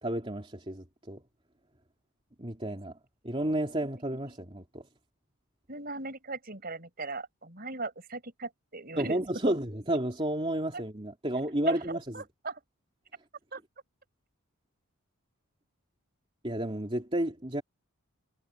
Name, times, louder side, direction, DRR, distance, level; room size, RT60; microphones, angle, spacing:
voice 1, 0.0-1.2 2.4-2.9 3.2-4.9 9.0-12.0 16.4-17.6, right 1 dB, 25° right, 2.9 m, -31 dB
voice 2, 5.7-9.5 10.7-10.8 11.7-12.6 13.5-13.6, right 3 dB, 45° right, 6.1 m, -38 dB
head